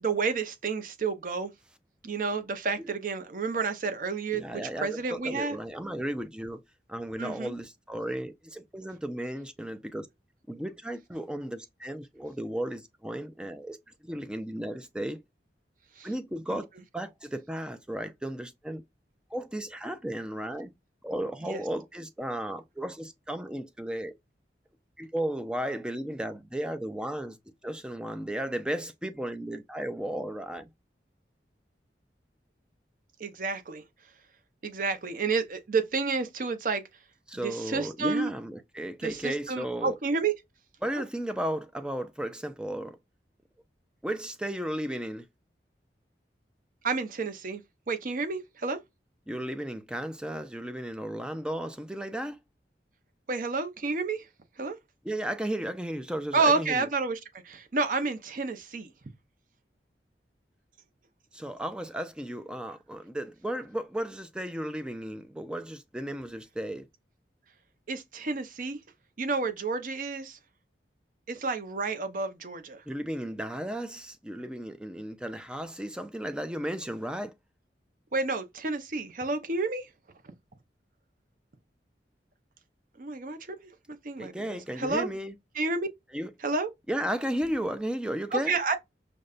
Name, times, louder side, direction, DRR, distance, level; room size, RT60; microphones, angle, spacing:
voice 1, 0.0-1.5 2.0-5.6 7.2-7.5 16.0-16.1 16.5-16.6 21.5-21.6 33.2-33.8 34.6-36.8 37.4-38.3 39.0-40.3 46.8-47.6 47.9-48.8 53.3-54.3 54.6-54.8 56.3-58.9 67.9-68.8 69.2-70.4 71.3-72.8 78.1-79.9 83.0-83.6 84.0-85.1 85.6-85.9 86.4-86.7 88.3-88.8, right 4 dB, 50° right, 0.6 m, -30 dB
voice 2, 4.3-6.6 6.9-10.1 10.5-13.8 14.0-15.2 16.0-16.7 16.9-18.8 19.3-20.7 21.0-24.1 25.0-27.4 27.6-30.7 37.3-40.0 40.8-43.0 44.0-45.3 49.3-52.4 55.0-56.9 61.3-66.9 72.9-77.3 84.2-85.4 86.1-86.3 86.9-88.5, right 1 dB, 5° right, 0.3 m, -34 dB
5.1 x 2.1 x 2.4 m
head